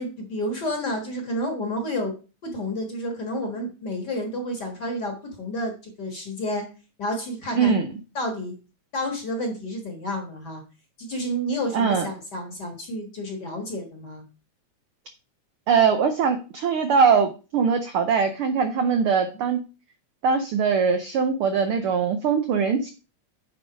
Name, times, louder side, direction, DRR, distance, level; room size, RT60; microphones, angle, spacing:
voice 1, 0.0-2.1 2.4-6.6 7.0-7.8 8.1-8.5 8.9-10.6 11.0-14.2, equal, 45° left, 3 dB, 1.6 m, -30 dB
voice 2, 7.5-7.9 11.7-12.1 15.7-19.6 20.2-22.9, right 6 dB, 85° right, 7 dB, 1.2 m, -21 dB
9.2 x 3.8 x 5.0 m, 0.33 s
omnidirectional pair, 3.3 m